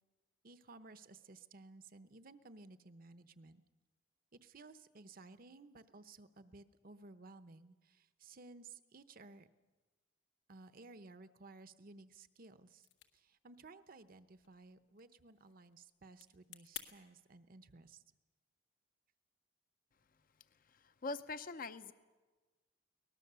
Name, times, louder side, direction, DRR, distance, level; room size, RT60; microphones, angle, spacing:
voice 1, 0.4-3.6 4.3-9.5 10.5-12.9 13.1-18.0, right 3 dB, 50° right, 12 dB, 0.9 m, -57 dB
sound 1, 12.7-16.9, left 11 dB, 85° left, 1.7 m, -55 dB
voice 2, 20.6-21.9, left 3 dB, 50° left, 12 dB, 0.7 m, -43 dB
23.0 x 19.5 x 6.9 m, 1.3 s
head